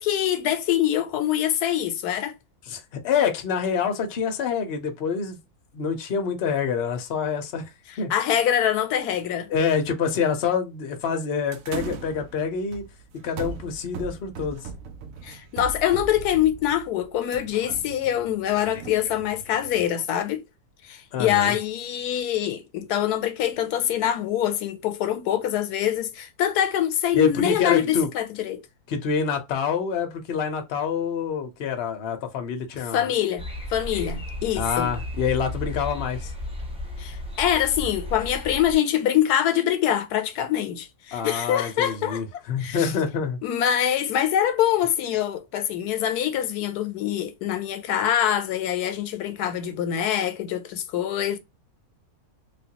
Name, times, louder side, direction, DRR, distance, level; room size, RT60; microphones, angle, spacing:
voice 1, 0.0-2.3 8.1-9.5 15.2-20.4 20.9-28.6 32.9-34.9 37.0-42.2 42.6-42.9 43.4-51.4, left 10 dB, 90° left, 1.2 m, -24 dB
voice 2, 2.7-5.4 5.7-7.6 8.0-8.1 9.5-12.8 13.2-14.7 18.5-18.6 19.1-19.2 21.1-21.6 27.1-28.1 28.9-33.1 34.6-36.3 41.1-43.4, left 6 dB, 50° left, 0.8 m, -26 dB
sound 1, 11.5-19.9, right 5 dB, 70° right, 1.0 m, -39 dB
sound 2, 33.4-38.7, left 1 dB, 5° right, 0.6 m, -34 dB
3.4 x 2.5 x 2.8 m
omnidirectional pair, 1.6 m